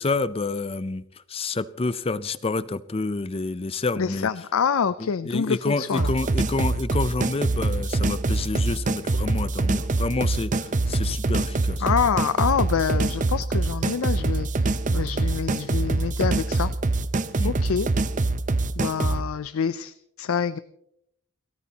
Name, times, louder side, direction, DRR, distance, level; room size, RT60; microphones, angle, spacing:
voice 1, 0.0-4.3 5.0-11.9 17.4-17.5, left 3 dB, 25° left, 16 dB, 0.5 m, -28 dB
voice 2, 4.0-6.1 11.8-16.7 17.4-17.9 18.8-20.6, left 6 dB, 80° left, 14 dB, 0.5 m, -26 dB
sound 1, 6.0-19.2, right 2 dB, 35° right, 0.6 m, -24 dB
29.5 x 13.5 x 2.9 m, 0.74 s
head